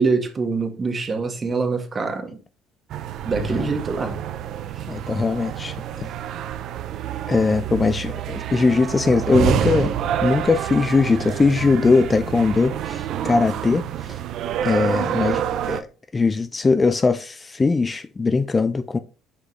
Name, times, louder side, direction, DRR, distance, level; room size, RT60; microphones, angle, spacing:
voice 1, 0.0-2.4 3.2-4.2 4.8-4.9 14.4-14.5, right 4 dB, 30° right, 1.5 m, -24 dB
sound 1, 2.9-15.8, right 10 dB, 60° right, 0.6 m, -27 dB
voice 2, 4.9-6.1 7.3-9.9 10.2-14.2 14.6-15.9 16.1-19.0, left 4 dB, 25° left, 0.5 m, -20 dB
6.5 x 5.2 x 3.2 m
supercardioid pair, 80°, 0 cm